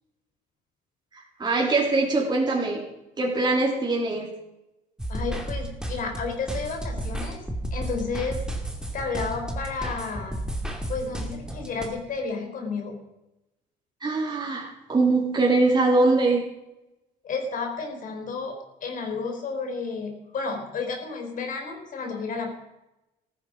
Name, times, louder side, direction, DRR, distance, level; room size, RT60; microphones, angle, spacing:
voice 1, 1.1-2.8 3.2-4.3 14.0-16.4, right 3 dB, 25° right, -2 dB, 3.6 m, -22 dB
sound 1, 5.0-11.9, right 1 dB, 5° right, 2.5 m, -32 dB
voice 2, 5.1-7.4 7.7-8.4 8.9-10.4 10.9-13.0 17.2-22.5, left 4 dB, 50° left, 3 dB, 4.2 m, -32 dB
15.0 x 14.0 x 5.1 m, 0.94 s
cardioid pair, 110°, 17 cm